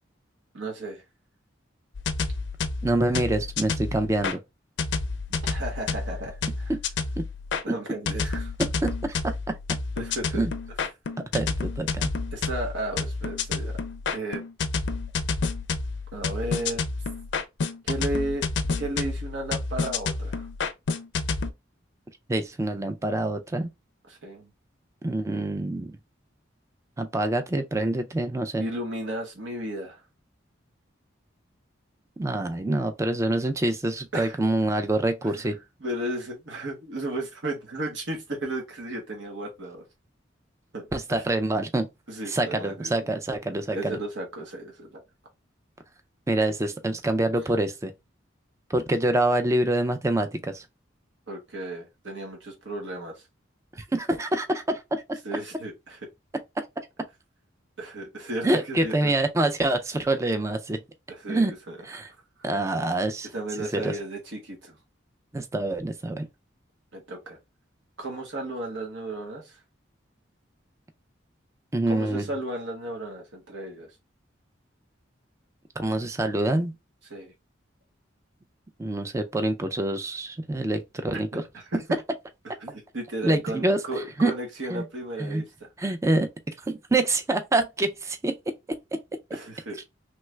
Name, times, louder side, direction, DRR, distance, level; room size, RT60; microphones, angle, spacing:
voice 1, 0.5-1.0 5.4-6.7 7.6-8.5 10.0-10.4 12.3-13.8 14.1-14.4 16.1-16.8 17.8-18.5 18.8-20.5 24.1-24.5 28.6-30.0 34.1-34.4 35.2-35.5 35.8-39.8 40.7-41.2 42.1-43.1 43.7-45.0 51.3-53.1 55.2-56.0 57.8-59.1 61.1-61.8 63.3-64.8 66.9-67.4 68.0-69.6 71.9-73.9 77.1-77.3 81.1-81.8 82.6-85.7 89.3-89.8, right 1 dB, 70° right, 0.9 m, -34 dB
sound 1, 1.9-4.4 4.8-7.6 8.1-21.5, left 4 dB, 65° left, 0.4 m, -30 dB
voice 2, 2.8-4.4 7.2-7.3 8.8-9.5 10.3-10.5 11.3-12.1 22.3-23.7 25.0-25.9 27.0-28.6 32.2-35.6 40.9-41.9 42.3-44.0 46.3-47.9 48.7-50.6 53.8-55.2 58.4-60.8 61.3-61.6 61.8-62.1 62.4-63.3 63.7-63.9 65.3-66.3 71.7-72.2 75.8-76.7 78.8-81.4 83.2-83.8 84.2-84.3 84.7-84.9 85.2-85.4 85.8-86.3 86.9-88.4 88.9-89.0 89.8-89.9, right 2 dB, 15° right, 0.3 m, -26 dB
3.1 x 2.3 x 3.0 m
head